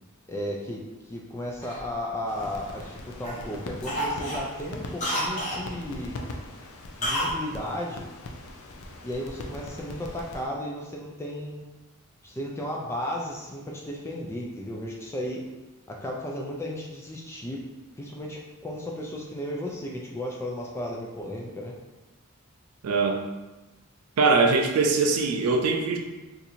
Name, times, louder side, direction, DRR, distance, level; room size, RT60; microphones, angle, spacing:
voice 1, 0.3-6.2 7.0-8.1 9.0-11.6 12.2-15.4 15.9-17.6 18.0-21.7, left 1 dB, 10° left, -2 dB, 0.3 m, -34 dB
Cough, 1.6-2.9 3.2-3.5 3.8-5.6 7.0-7.4 7.6-7.7, equal, 35° left, 1.0 m, -30 dB
sound 1, 2.3-10.5, left 2 dB, 80° left, 0.4 m, -41 dB
voice 2, 22.8-23.2 24.2-26.0, right 4 dB, 90° right, 3 dB, 0.4 m, -22 dB
2.7 x 2.5 x 4.2 m, 1.1 s
head